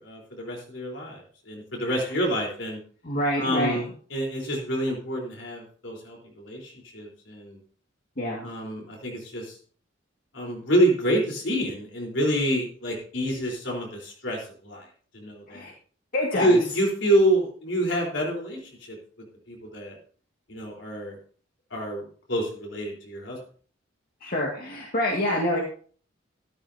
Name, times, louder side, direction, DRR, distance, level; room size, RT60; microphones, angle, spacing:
voice 1, 0.0-2.8 3.4-7.6 8.4-9.6 10.3-14.9 15.1-15.7 16.4-20.0 20.5-21.2 21.7-22.0 22.3-23.4, equal, 70° left, -1 dB, 4.0 m, -27 dB
voice 2, 3.0-3.8 8.2-8.5 15.5-15.7 16.1-16.6 24.2-25.6, left 1 dB, 50° left, -2 dB, 2.0 m, -26 dB
14.0 x 12.5 x 2.8 m, 0.44 s
head